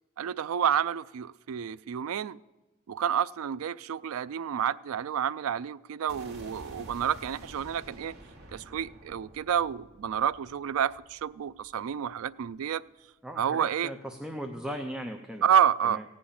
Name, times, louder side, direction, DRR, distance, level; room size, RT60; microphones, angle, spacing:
voice 1, 0.2-2.4 2.9-8.1 8.5-12.8 13.4-13.9 15.4-16.0, right 8 dB, 75° right, 0.4 m, -29 dB
sound 1, 6.1-12.1, right 1 dB, 50° right, 2.2 m, -49 dB
voice 2, 13.2-15.4 15.8-16.0, equal, 5° right, 0.6 m, -38 dB
16.0 x 5.7 x 8.6 m
head